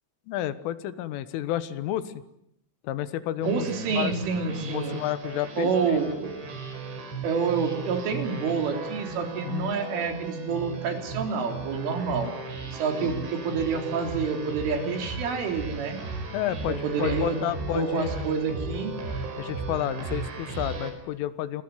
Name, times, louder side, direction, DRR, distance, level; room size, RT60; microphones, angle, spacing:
voice 1, 0.3-2.1 2.8-4.1 4.6-6.0 9.4-9.7 13.0-13.3 16.3-18.1 19.4-21.6, left 12 dB, 85° left, 13 dB, 3.9 m, -31 dB
sound 1, 3.4-20.9, right 3 dB, 65° right, 6.6 m, -36 dB
voice 2, 3.4-5.0 5.6-6.3 7.2-12.3 12.7-16.0 16.7-17.4 17.7-18.9, right 5 dB, 80° right, 5 dB, 6.2 m, -28 dB
28.0 x 22.0 x 9.5 m, 0.78 s
omnidirectional pair, 5.6 m